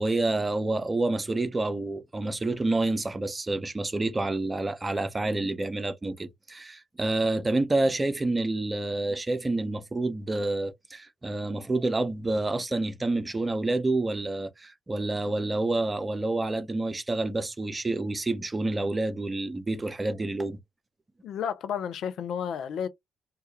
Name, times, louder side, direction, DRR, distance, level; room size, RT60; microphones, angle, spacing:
voice 1, 0.0-20.6, right 2 dB, 25° right, 0.6 m, -28 dB
voice 2, 21.2-22.9, left 8 dB, 65° left, 0.4 m, -31 dB
2.2 x 2.1 x 2.9 m
hypercardioid pair, 40°, 0 cm